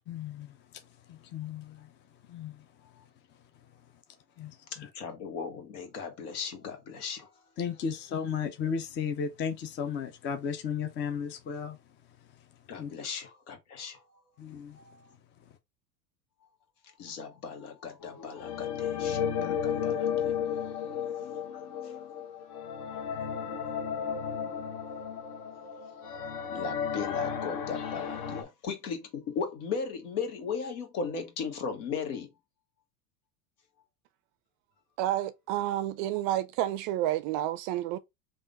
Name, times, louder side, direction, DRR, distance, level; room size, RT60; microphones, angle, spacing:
voice 1, 0.0-4.0 4.4-4.9 7.6-12.9 14.4-15.6, left 7 dB, 25° left, 0.5 m, -36 dB
voice 2, 4.9-7.3 12.7-14.0 14.8-15.0 17.0-22.2 22.9-23.0 26.5-32.3, left 5 dB, 70° left, 1.4 m, -37 dB
sound 1, 18.0-28.4, left 8 dB, 50° left, 0.9 m, -33 dB
voice 3, 35.0-38.0, right 13 dB, 45° right, 0.4 m, -30 dB
3.4 x 2.5 x 3.9 m
hypercardioid pair, 105°, 47 cm